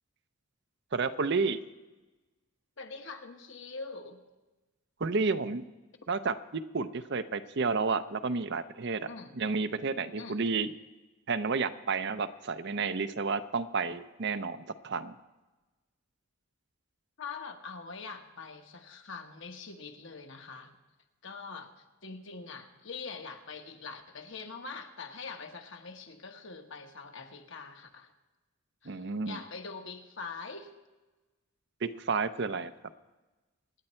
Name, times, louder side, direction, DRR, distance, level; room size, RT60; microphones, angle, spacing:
voice 1, 0.9-1.6 5.0-5.6 6.1-9.1 9.3-10.7 11.3-15.1 28.9-29.4 31.8-32.7, right 4 dB, 55° right, 11 dB, 0.6 m, -31 dB
voice 2, 2.8-4.2 9.1-9.3 10.2-10.4 17.2-20.7 21.2-28.1 28.8-30.7, left 4 dB, 60° left, 5 dB, 1.4 m, -43 dB
25.5 x 9.7 x 4.4 m, 1.1 s
head